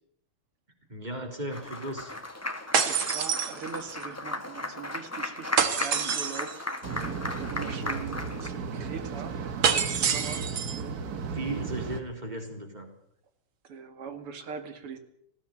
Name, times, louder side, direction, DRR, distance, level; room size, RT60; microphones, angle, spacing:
voice 1, 0.9-2.1 11.1-12.9, right 1 dB, 20° right, 3 dB, 4.0 m, -36 dB
Applause, 1.5-8.5, left 1 dB, 10° left, 1.3 m, -36 dB
sound 1, 2.7-4.0 5.6-6.6 9.6-10.8, right 7 dB, 65° right, 2.4 m, -27 dB
voice 2, 2.8-9.4 9.7-10.5 13.6-15.0, right 6 dB, 85° right, 8 dB, 3.0 m, -41 dB
sound 2, 6.8-12.0, right 5 dB, 50° right, 1.7 m, -35 dB
19.5 x 15.5 x 9.1 m, 0.71 s
omnidirectional pair, 2.4 m